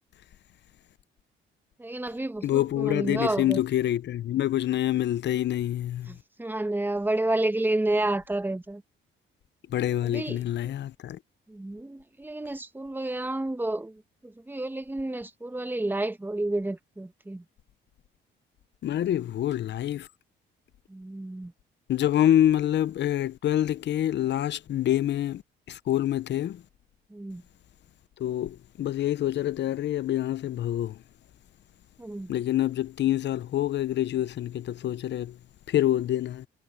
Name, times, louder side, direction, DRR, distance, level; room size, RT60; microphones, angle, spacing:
voice 1, 1.8-3.6 6.1-8.8 10.0-10.7 11.5-17.4 20.9-21.5 27.1-27.4 32.0-32.3, right 2 dB, 10° right, 1.4 m, -30 dB
voice 2, 2.4-6.2 9.7-11.2 18.8-20.1 21.9-25.4 25.7-26.6 28.2-31.0 32.3-35.4 35.7-36.5, left 12 dB, 60° left, 0.7 m, -26 dB
cardioid pair, 90°, 20 cm